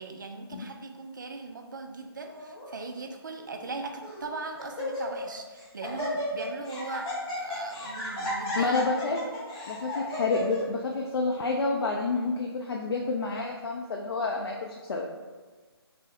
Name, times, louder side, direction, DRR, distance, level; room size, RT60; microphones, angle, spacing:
voice 1, 0.0-8.9, right 3 dB, 50° right, 5 dB, 0.4 m, -39 dB
Laughter, 2.3-2.7 3.4-3.5 4.0-4.3 4.6-5.3 5.6-10.6, left 1 dB, 10° left, 0.5 m, -34 dB
voice 2, 8.6-9.2 9.7-15.2, left 3 dB, 70° left, 0 dB, 0.4 m, -29 dB
4.6 x 2.0 x 3.0 m, 1.4 s
hypercardioid pair, 170°, 14 cm